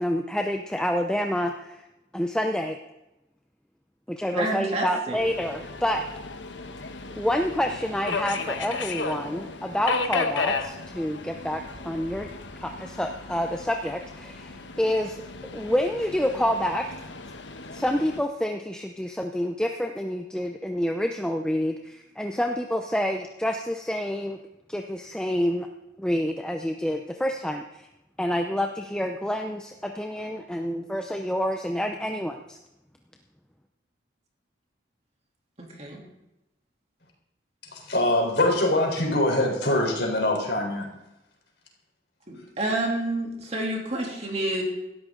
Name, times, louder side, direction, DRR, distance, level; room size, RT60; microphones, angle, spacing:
voice 1, 0.0-1.8 2.1-2.8 4.1-6.0 7.2-12.3 12.6-15.2 15.5-16.8 17.7-24.4 24.7-25.7 26.0-27.9 28.2-32.6, equal, 5° left, 3 dB, 0.6 m, -28 dB
voice 2, 4.3-5.2 35.6-36.0 42.3-44.6, right 1 dB, 35° right, -1 dB, 3.1 m, -29 dB
Subway metro underground, 5.2-18.2, left 4 dB, 85° left, 1.2 m, -34 dB
voice 3, 37.6-40.9, left 1 dB, 70° left, 1 dB, 4.1 m, -23 dB
17.5 x 13.0 x 3.9 m, 0.95 s
head